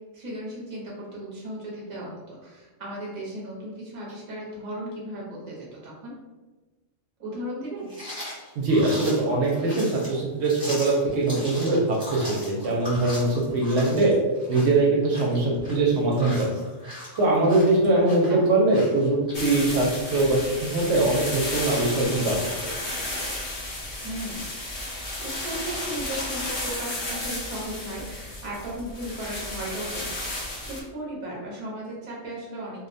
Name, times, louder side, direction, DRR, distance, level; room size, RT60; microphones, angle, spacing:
voice 1, 0.1-6.1 7.2-7.9 17.9-18.4 24.0-24.5 24.9-32.9, right 1 dB, 35° right, -4 dB, 0.6 m, -36 dB
sound 1, 7.9-20.4, left 1 dB, 5° right, 0.8 m, -40 dB
voice 2, 8.6-14.1 14.5-16.5 17.2-22.7, right 2 dB, 70° right, -3 dB, 0.8 m, -22 dB
sound 2, 19.3-30.8, left 1 dB, 55° left, 0.8 m, -33 dB
2.4 x 2.1 x 2.5 m, 1.2 s
omnidirectional pair, 1.2 m